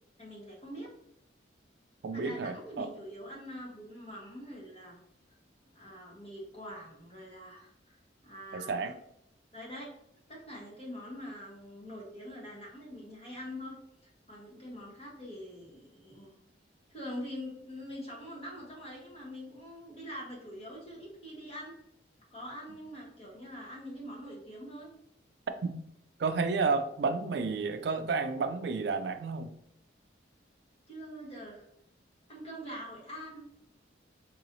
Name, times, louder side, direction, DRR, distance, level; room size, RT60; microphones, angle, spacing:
voice 1, 0.2-0.9 2.1-5.0 5.7-8.9 9.5-9.9 10.3-13.7 14.0-16.4 16.9-21.7 22.3-24.9 30.9-31.7 32.3-33.5, equal, 30° left, -4 dB, 1.1 m, -44 dB
voice 2, 2.0-2.9 8.5-8.9 25.6-25.8 26.2-29.5, right 4 dB, 60° right, 8 dB, 0.3 m, -31 dB
3.9 x 2.8 x 2.6 m, 0.74 s
head